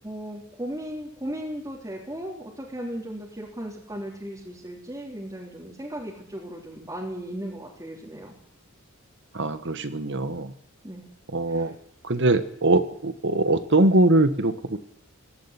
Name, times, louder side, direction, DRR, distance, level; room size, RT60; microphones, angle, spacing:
voice 1, 0.0-8.3 10.8-11.1 11.5-11.7, equal, 15° right, -3 dB, 3.4 m, -36 dB
voice 2, 9.3-10.5 11.3-11.7 12.1-14.8, right 2 dB, 60° right, 11 dB, 1.6 m, -22 dB
16.5 x 16.5 x 9.9 m, 0.68 s
head